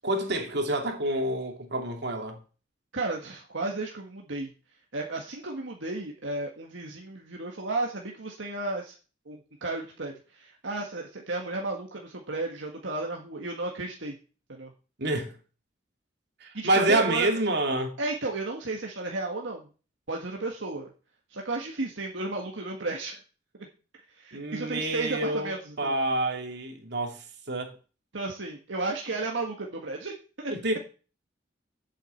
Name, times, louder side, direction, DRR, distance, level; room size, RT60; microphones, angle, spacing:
voice 1, 0.0-2.4 15.0-15.4 16.4-17.9 24.3-27.8 30.5-30.8, right 2 dB, 65° right, 2.7 m, -28 dB
voice 2, 2.9-4.5 4.9-8.9 9.2-14.1 14.5-14.7 16.5-17.3 18.0-19.7 20.1-20.9 21.3-23.2 23.6-23.7 23.9-26.0 28.1-30.5, right 2 dB, 80° right, 1.8 m, -33 dB
8.4 x 7.7 x 7.9 m
head